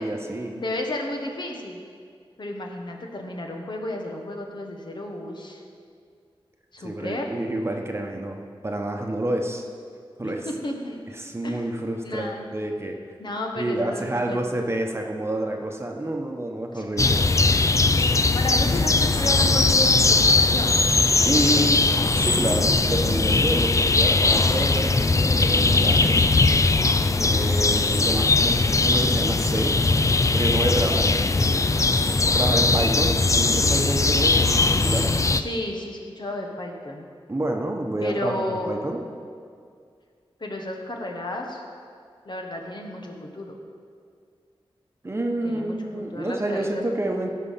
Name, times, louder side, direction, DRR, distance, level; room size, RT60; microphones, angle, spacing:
voice 1, 0.0-0.5 6.8-9.6 10.2-10.4 11.2-13.0 13.6-17.2 21.2-21.8 22.1-26.3 27.2-29.7 30.3-31.5 32.3-35.1 37.3-39.0 45.0-47.3, right 1 dB, 25° right, 2 dB, 1.1 m, -28 dB
voice 2, 0.5-1.8 2.4-5.6 6.7-7.3 10.2-11.0 11.4-11.7 12.0-12.4 13.2-14.5 16.7-16.8 18.3-20.9 21.3-21.7 35.3-37.1 38.0-38.7 40.4-41.6 42.2-43.6 45.4-46.8, left 1 dB, 50° left, 1 dB, 1.4 m, -32 dB
sound 1, 17.0-35.4, left 3 dB, 35° left, 0.4 m, -20 dB
16.0 x 5.6 x 5.8 m, 2.2 s
wide cardioid pair, 95°, 10 cm